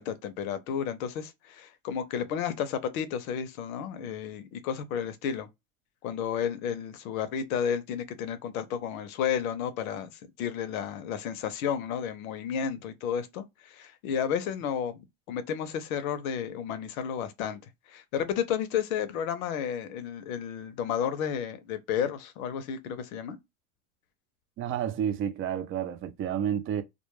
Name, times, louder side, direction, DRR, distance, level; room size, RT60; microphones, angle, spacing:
voice 1, 0.0-5.5 6.0-10.1 10.4-17.6 17.9-23.4, left 8 dB, 80° left, 0.7 m, -32 dB
voice 2, 24.6-26.8, right 9 dB, 30° right, 0.4 m, -30 dB
2.2 x 2.0 x 3.0 m
supercardioid pair, 115°, 41 cm